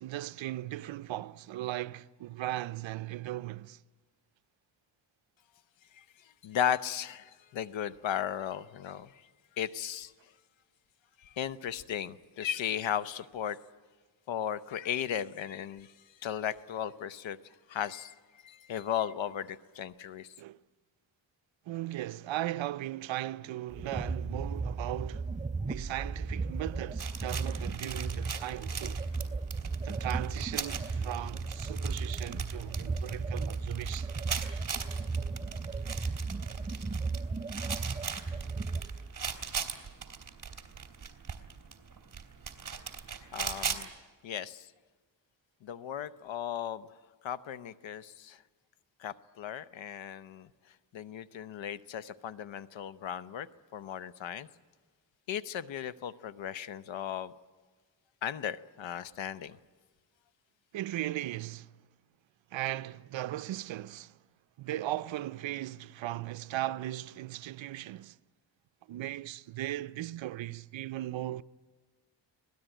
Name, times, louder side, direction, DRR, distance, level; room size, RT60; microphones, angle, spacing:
voice 1, 0.0-3.8 20.4-20.6 21.7-25.4 25.6-29.0 29.8-34.1 60.7-61.7 62.5-64.2 64.6-68.2 68.9-71.4, right 14 dB, 85° right, 0.6 m, -37 dB
voice 2, 6.4-9.1 9.6-10.1 11.2-13.6 14.3-15.9 16.2-17.4 17.7-18.1 18.4-20.3 43.3-43.9 44.2-44.7 45.6-46.9 47.2-48.4 49.0-50.5 50.9-54.5 55.3-57.3 58.2-59.6, left 9 dB, 85° left, 0.9 m, -36 dB
sound 1, 23.7-39.4, right 4 dB, 15° right, 0.7 m, -35 dB
sound 2, 27.0-43.9, right 6 dB, 45° right, 2.8 m, -40 dB
25.5 x 18.5 x 9.1 m
cardioid pair, 80°, 44 cm